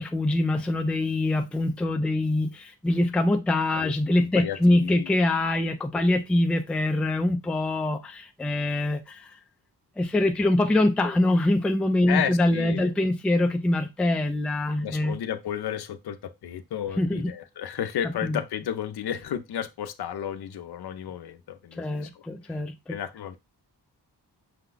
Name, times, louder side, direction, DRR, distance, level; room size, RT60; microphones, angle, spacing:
voice 1, 0.0-9.3 10.0-15.2 17.0-17.3 18.2-18.4 21.7-22.9, left 1 dB, 5° left, 0.3 m, -24 dB
voice 2, 4.3-5.2 6.0-6.1 12.1-12.9 14.8-22.6 22.9-23.4, left 9 dB, 65° left, 0.6 m, -33 dB
5.8 x 2.2 x 3.8 m
wide cardioid pair, 150°, 41 cm